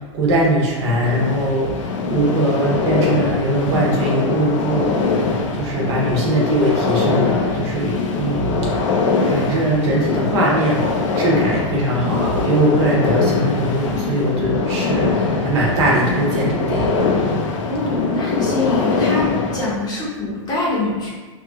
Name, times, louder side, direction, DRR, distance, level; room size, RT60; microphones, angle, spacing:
voice 1, 0.1-4.9 5.5-16.9, right 1 dB, 60° right, -3 dB, 0.8 m, -20 dB
sound 1, 0.8-19.7, left 4 dB, 70° left, 0.4 m, -22 dB
voice 2, 17.7-21.1, left 2 dB, 25° left, -7 dB, 0.8 m, -24 dB
2.9 x 2.5 x 2.2 m, 1.3 s
hypercardioid pair, 135°, 17 cm